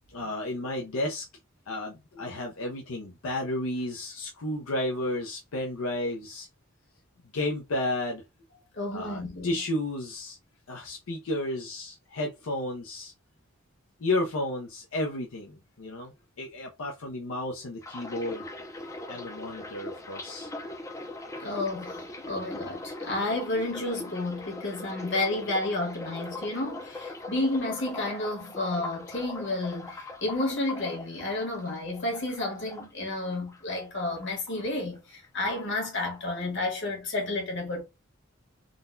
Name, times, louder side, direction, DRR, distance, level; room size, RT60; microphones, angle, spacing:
voice 1, 0.1-1.2 1.7-6.5 7.3-8.2 8.9-10.4 10.7-13.1 14.0-18.4 19.1-20.5, left 1 dB, 85° left, 0.6 m, -32 dB
voice 2, 8.7-9.6 21.4-37.8, left 2 dB, 65° left, 1.5 m, -31 dB
sound 1, 17.8-33.8 34.1-35.0 35.2-35.6, left 2 dB, 15° left, 0.4 m, -41 dB
3.8 x 2.1 x 2.5 m
head